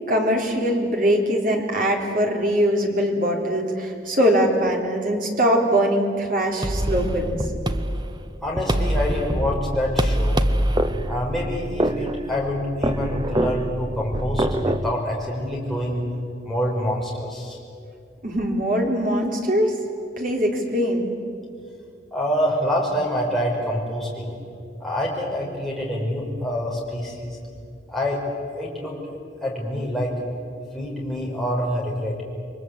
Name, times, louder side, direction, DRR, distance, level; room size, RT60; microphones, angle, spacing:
voice 1, 0.1-7.4 18.2-19.8 20.2-21.1, equal, 45° right, 1 dB, 3.6 m, -22 dB
sound 1, 6.6-14.9, right 1 dB, 25° right, 0.8 m, -24 dB
voice 2, 8.4-10.4 11.1-16.0 16.4-17.6 22.1-24.4 24.8-27.4 27.9-28.2 28.6-30.2 30.7-32.2, equal, ahead, -4 dB, 5.4 m, -26 dB
29.0 x 22.5 x 8.1 m, 2.3 s
head